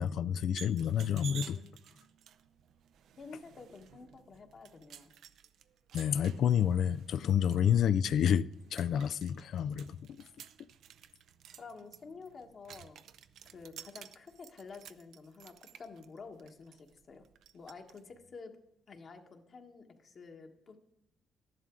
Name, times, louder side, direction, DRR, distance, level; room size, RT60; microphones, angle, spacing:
voice 1, 0.0-1.6 5.9-10.0, left 9 dB, 70° left, 0.4 m, -29 dB
sound 1, 0.5-18.0, right 9 dB, 75° right, 0.5 m, -53 dB
voice 2, 1.1-1.7 3.2-5.1 11.6-13.0 13.5-17.2 17.5-18.6 18.9-20.8, left 4 dB, 50° left, 1.4 m, -50 dB
12.5 x 11.0 x 3.7 m
cardioid pair, 90°, 0 cm